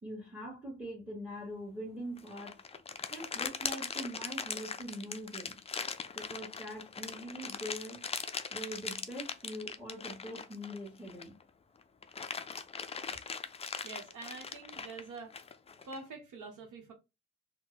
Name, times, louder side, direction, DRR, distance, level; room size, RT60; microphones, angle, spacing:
voice 1, 0.0-2.6 3.1-5.6 6.1-8.0 8.5-11.3, equal, 5° right, 1.3 m, -43 dB
sound 1, 2.2-11.4 11.8-16.0, left 5 dB, 20° left, 0.3 m, -40 dB
voice 2, 13.8-15.4 15.8-16.9, right 3 dB, 75° right, 0.9 m, -46 dB
2.7 x 2.1 x 3.9 m
cardioid pair, 85°, 31 cm